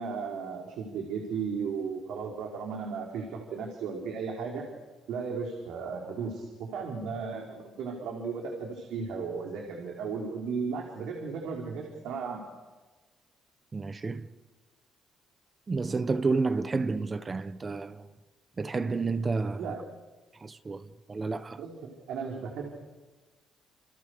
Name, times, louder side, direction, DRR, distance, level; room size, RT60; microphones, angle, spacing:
voice 1, 0.0-4.7 5.1-12.5 19.6-19.8 21.6-22.8, right 5 dB, 80° right, 5.1 m, -35 dB
voice 2, 13.7-14.3 15.7-18.1 18.6-19.7 20.4-21.6, right 4 dB, 25° right, 1.1 m, -30 dB
29.5 x 29.0 x 6.8 m
cardioid pair, 140°, 0 cm